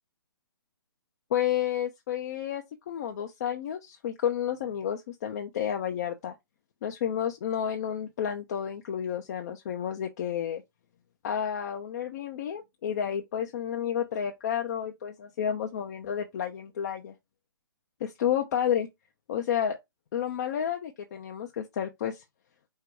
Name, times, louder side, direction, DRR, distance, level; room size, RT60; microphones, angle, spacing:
voice 1, 1.3-6.3 6.8-10.6 11.2-17.1 18.0-18.9 19.3-19.8 20.1-22.2, left 9 dB, 40° left, 0.7 m, -31 dB
5.2 x 2.2 x 4.7 m
hypercardioid pair, 145°, 14 cm